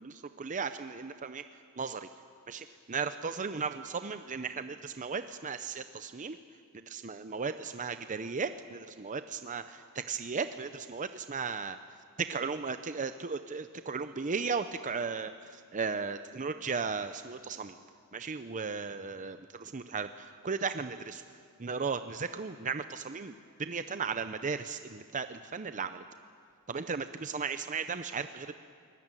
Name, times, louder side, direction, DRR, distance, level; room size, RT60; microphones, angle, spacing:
voice 1, 0.0-1.4 1.8-2.1 2.5-6.4 6.7-11.8 12.2-17.8 18.1-19.4 19.7-20.1 20.4-21.2 21.6-26.0 26.7-28.5, right 5 dB, 35° right, 10 dB, 0.6 m, -36 dB
23.0 x 20.0 x 9.0 m, 2.2 s
head